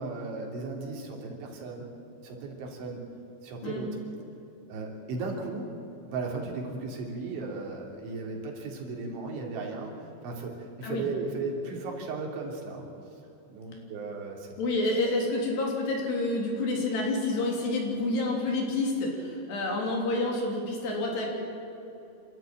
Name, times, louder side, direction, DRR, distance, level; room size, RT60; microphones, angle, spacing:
voice 1, 0.0-1.9 2.2-3.0 3.4-4.0 4.7-5.8 6.1-12.9 13.5-14.5, right 3 dB, 70° right, 0 dB, 5.3 m, -36 dB
voice 2, 14.6-21.3, left 2 dB, 55° left, 0 dB, 5.2 m, -28 dB
28.5 x 13.0 x 9.1 m, 2.9 s
omnidirectional pair, 5.8 m